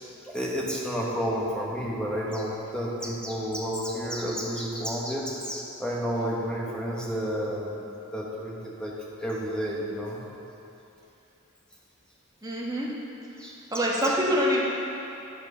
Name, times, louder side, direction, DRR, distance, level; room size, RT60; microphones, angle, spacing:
voice 1, 0.3-7.8 8.1-8.9 9.2-10.2 13.4-13.5 14.0-14.2, equal, 5° left, -4 dB, 1.2 m, -31 dB
voice 2, 12.4-12.9 13.7-14.6, equal, 15° right, -4 dB, 1.3 m, -25 dB
11.0 x 6.0 x 5.6 m, 2.9 s
head